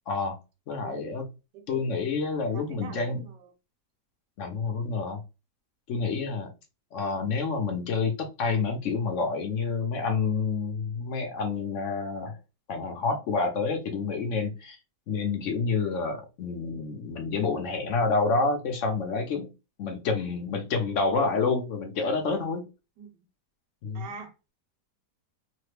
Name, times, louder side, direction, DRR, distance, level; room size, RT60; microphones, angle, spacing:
voice 1, 0.1-0.4 0.7-1.2 1.7-3.2 4.4-5.2 5.9-6.5 6.9-12.4 12.7-14.8 15.1-19.5 19.8-22.6 23.8-24.1, left 4 dB, 60° left, 0.8 m, -28 dB
voice 2, 0.8-1.2 1.5-2.1 2.5-3.5 23.0-23.2 23.9-24.5, right 6 dB, 85° right, 1.4 m, -43 dB
3.2 x 2.1 x 3.2 m
omnidirectional pair, 1.8 m